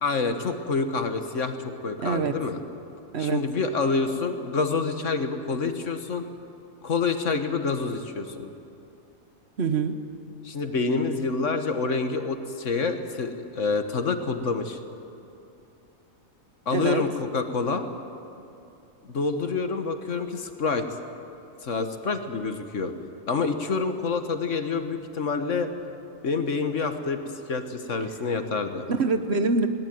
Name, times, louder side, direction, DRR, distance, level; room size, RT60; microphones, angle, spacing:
voice 1, 0.0-1.6 1.8-2.6 3.2-6.2 6.8-8.5 10.4-14.8 16.7-17.9 19.0-20.9 21.6-22.9 23.3-26.0 26.2-27.2 27.5-28.9, left 4 dB, 60° left, 7 dB, 1.7 m, -27 dB
voice 2, 2.0-2.4 3.1-3.4 9.6-9.9 16.7-17.1 29.0-29.7, right 4 dB, 50° right, 9 dB, 1.3 m, -24 dB
20.5 x 18.5 x 9.3 m, 2.7 s
omnidirectional pair, 1.4 m